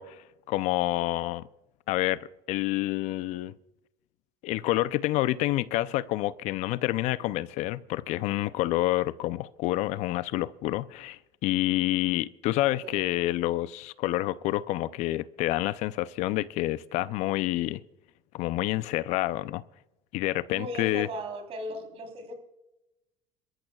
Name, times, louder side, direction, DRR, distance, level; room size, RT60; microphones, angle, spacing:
voice 1, 0.0-1.4 1.9-2.2 2.5-3.5 4.4-17.8 18.3-19.6 20.1-21.1, left 16 dB, 65° left, 0.5 m, -28 dB
voice 2, 12.7-13.1 20.5-22.3, right 1 dB, 50° right, 3.6 m, -37 dB
27.5 x 14.0 x 2.4 m
supercardioid pair, 95°, 13 cm